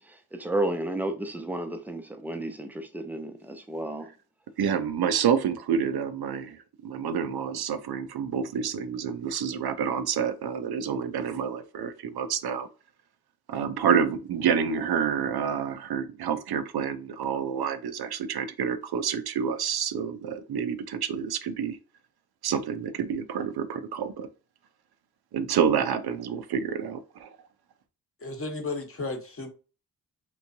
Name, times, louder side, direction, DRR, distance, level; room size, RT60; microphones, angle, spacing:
voice 1, 0.0-4.1, right 1 dB, 5° right, 0.4 m, -32 dB
voice 2, 4.6-12.7 13.5-21.8 22.4-24.3 25.3-27.3, right 7 dB, 80° right, 0.6 m, -28 dB
voice 3, 28.2-29.5, left 3 dB, 35° left, 0.9 m, -34 dB
3.3 x 3.1 x 2.6 m
wide cardioid pair, 115°, 37 cm